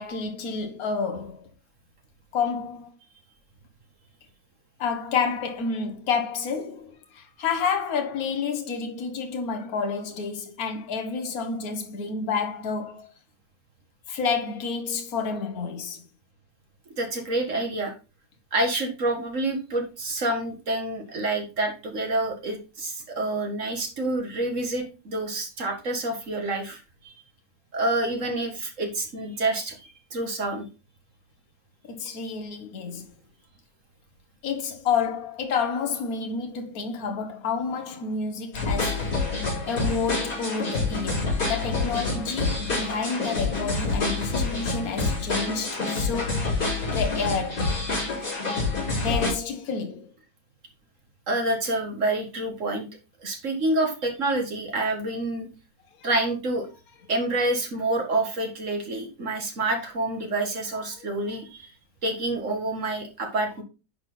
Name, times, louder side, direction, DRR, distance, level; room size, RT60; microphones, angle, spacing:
voice 1, 0.0-1.5 2.3-2.9 4.8-13.1 14.1-16.0 31.9-33.1 34.4-39.0 39.7-47.8 49.0-50.1 56.0-56.1 61.0-61.1, left 5 dB, 60° left, 1.7 m, -29 dB
voice 2, 17.0-17.9 18.5-27.1 27.7-30.6 51.3-52.9 53.2-55.5 56.0-56.7 57.1-61.7 62.0-63.6, right 2 dB, 50° right, 2.1 m, -28 dB
sound 1, 38.5-49.3, left 3 dB, 75° left, 4.4 m, -27 dB
10.5 x 4.4 x 3.9 m
omnidirectional pair, 1.8 m